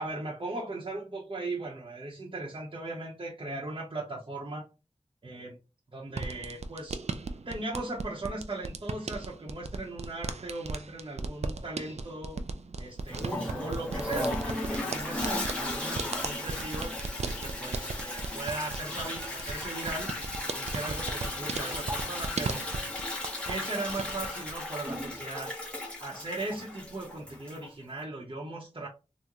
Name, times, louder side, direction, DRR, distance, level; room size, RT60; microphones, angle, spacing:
voice 1, 0.0-4.7 5.2-5.6 5.9-7.0 7.5-12.4 12.8-17.0 17.4-20.1 20.5-22.6 23.4-25.5 26.0-28.9, right 2 dB, 45° right, -4 dB, 0.8 m, -38 dB
sound 1, 6.1-23.6 23.9-24.6, right 3 dB, 70° right, 0.4 m, -37 dB
Toilet flush, 13.1-27.7, left 1 dB, 10° left, 0.9 m, -36 dB
3.6 x 2.1 x 2.9 m, 0.30 s
wide cardioid pair, 60°, 12 cm